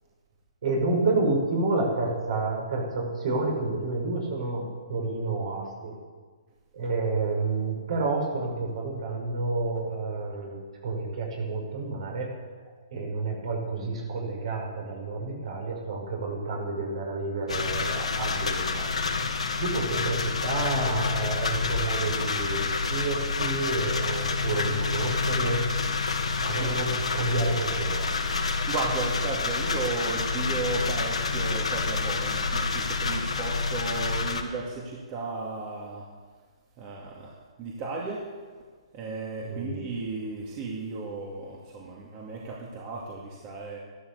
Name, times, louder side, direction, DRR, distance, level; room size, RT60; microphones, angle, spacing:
voice 1, 0.6-5.9 6.7-12.3 12.9-18.9 19.6-25.7 26.4-28.1 39.4-39.9, right 3 dB, 60° right, 0 dB, 5.7 m, -29 dB
sound 1, 17.5-34.4, left 4 dB, 85° left, 2.4 m, -28 dB
voice 2, 28.7-36.0 36.8-37.3 37.6-38.2 38.9-43.8, right 3 dB, 30° right, -3 dB, 2.4 m, -34 dB
14.0 x 12.5 x 7.0 m, 1.5 s
hypercardioid pair, 145°, 3 cm